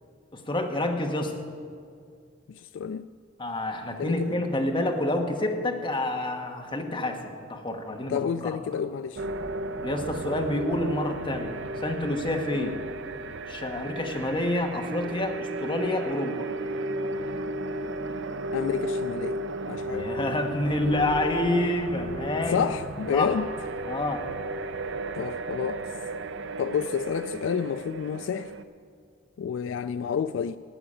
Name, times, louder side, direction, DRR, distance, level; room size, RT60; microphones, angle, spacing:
voice 1, 0.3-1.3 3.4-8.2 9.8-11.5 11.8-12.8 13.5-16.5 19.9-22.6 23.1-23.3 23.9-24.2, left 1 dB, 25° left, 2 dB, 1.3 m, -28 dB
voice 2, 2.5-3.1 4.0-4.4 8.1-9.2 12.6-12.7 18.5-19.4 19.7-20.1 22.5-23.5 25.1-25.8 26.6-28.5 29.4-30.6, left 7 dB, 70° left, 13 dB, 0.3 m, -29 dB
sound 1, 9.2-28.6, right 2 dB, 70° right, 0.6 m, -34 dB
14.0 x 6.0 x 9.9 m, 2.2 s
head